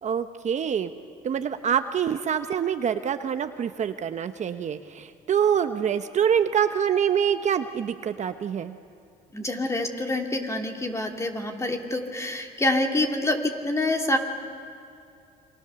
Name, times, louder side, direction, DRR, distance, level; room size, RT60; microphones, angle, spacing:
voice 1, 0.0-0.9 1.2-8.7, right 8 dB, 45° right, 9 dB, 0.9 m, -25 dB
voice 2, 9.3-14.2, left 2 dB, 15° left, 3 dB, 2.8 m, -26 dB
28.5 x 25.0 x 7.0 m, 2.5 s
cardioid pair, 110°, 17 cm